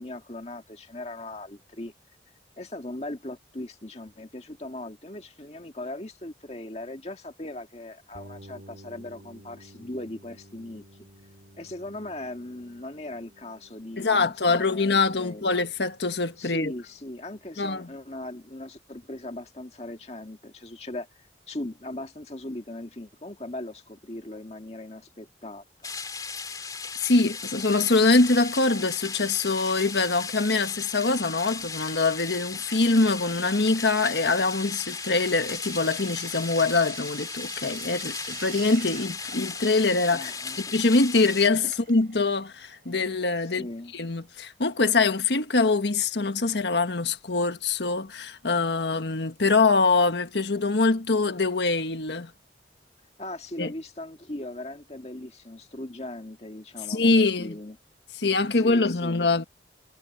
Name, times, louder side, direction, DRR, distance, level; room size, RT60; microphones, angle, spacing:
voice 1, 0.0-1.9 2.6-11.1 11.6-15.6 16.4-25.9 40.1-40.7 41.6-41.7 43.4-43.9 53.2-57.8 58.5-59.3, left 1 dB, 35° left, 1.9 m, -39 dB
sound 1, 8.1-17.9, right 1 dB, 70° right, 2.6 m, -53 dB
voice 2, 14.0-16.7 17.6-17.9 27.0-40.3 40.6-43.7 43.9-52.3 53.6-53.7 56.9-57.5 58.2-59.4, left 3 dB, 80° left, 1.4 m, -24 dB
sound 2, 25.8-41.5, left 5 dB, 20° left, 3.0 m, -36 dB
Drill, 27.6-43.9, right 8 dB, 50° right, 6.8 m, -49 dB
head